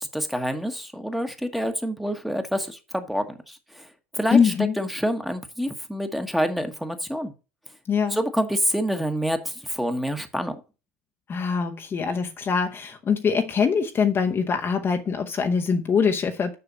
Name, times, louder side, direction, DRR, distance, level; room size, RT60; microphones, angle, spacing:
voice 1, 0.0-3.9 4.1-7.3 8.1-10.6, equal, ahead, 1.2 m, -27 dB
voice 2, 4.3-4.8 7.9-8.2 11.3-16.5, left 6 dB, 30° left, 0.9 m, -23 dB
6.9 x 5.6 x 5.4 m
hypercardioid pair, 85°, 7 cm